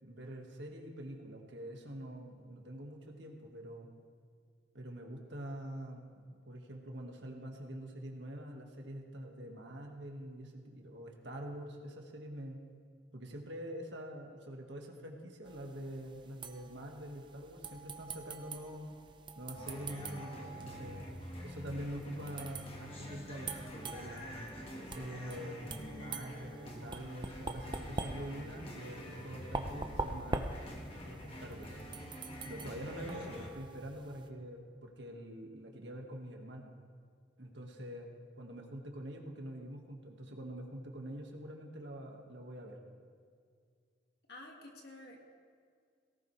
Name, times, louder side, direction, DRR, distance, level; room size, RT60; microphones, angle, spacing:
voice 1, 0.0-3.9 4.7-12.6 13.1-19.0 19.4-21.1 21.4-24.4 24.8-30.6 31.1-31.8 32.4-36.7 37.4-38.1 38.4-42.8, equal, 70° right, 1 dB, 1.8 m, -45 dB
sound 1, 15.4-34.3, right 3 dB, 25° right, 0.7 m, -45 dB
sound 2, 19.5-33.5, equal, 30° left, 1.6 m, -47 dB
voice 2, 44.3-45.2, left 2 dB, 55° left, 0 dB, 2.2 m, -50 dB
18.0 x 17.0 x 3.4 m, 2.1 s
head